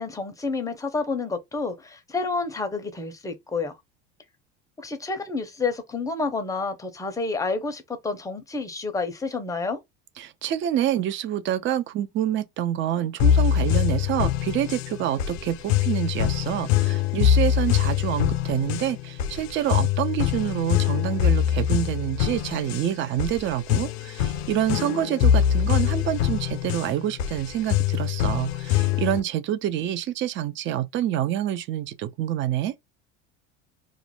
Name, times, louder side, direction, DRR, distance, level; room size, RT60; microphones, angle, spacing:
voice 1, 0.0-3.7 4.8-9.8, left 4 dB, 10° left, 0.6 m, -29 dB
voice 2, 10.2-32.7, right 11 dB, 35° right, 0.4 m, -27 dB
sound 1, 13.2-29.2, left 10 dB, 75° left, 0.5 m, -24 dB
2.5 x 2.1 x 3.2 m
supercardioid pair, 100°, 35 cm